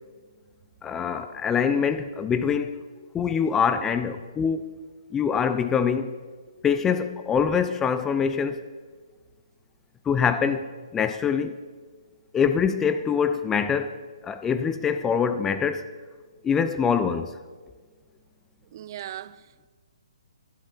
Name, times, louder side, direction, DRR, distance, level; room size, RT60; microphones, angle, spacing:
voice 1, 0.8-2.8 3.1-4.7 5.1-6.2 6.6-8.6 10.1-11.6 12.3-14.0 14.2-15.9 16.4-17.4, left 6 dB, 10° left, 0.5 m, -24 dB
voice 2, 18.7-19.7, right 11 dB, 40° right, 0.5 m, -39 dB
20.5 x 12.0 x 4.4 m
hypercardioid pair, 150°, 3 cm